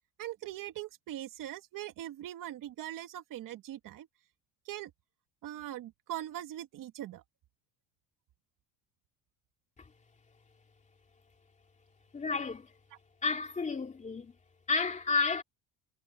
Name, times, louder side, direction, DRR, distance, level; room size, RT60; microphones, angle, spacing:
voice 1, 0.2-4.1 4.7-4.9 5.4-7.2, right 13 dB, 55° right, 2.5 m, -41 dB
voice 2, 12.1-12.8 13.2-14.3 14.7-15.4, left 4 dB, 20° left, 3.0 m, -31 dB
cardioid pair, 150°, 38 cm